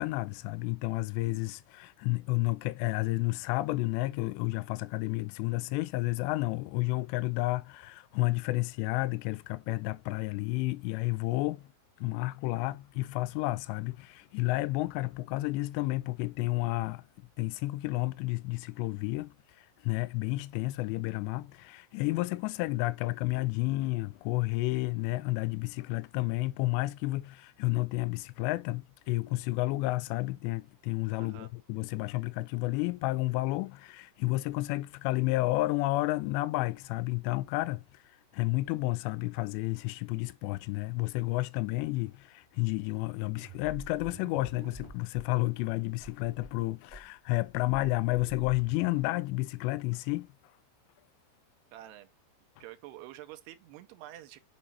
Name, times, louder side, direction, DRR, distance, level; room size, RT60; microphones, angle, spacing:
voice 1, 0.0-11.7 12.0-17.0 17.4-37.8 38.3-50.3, left 20 dB, 85° left, 2.7 m, -31 dB
voice 2, 31.2-31.5 51.7-52.1 52.6-54.4, right 14 dB, 80° right, 2.6 m, -47 dB
sound 1, 43.4-45.3 45.6-45.7 46.0-46.5 46.9-49.0, right 2 dB, 65° right, 0.5 m, -48 dB
7.4 x 5.5 x 2.7 m
omnidirectional pair, 4.9 m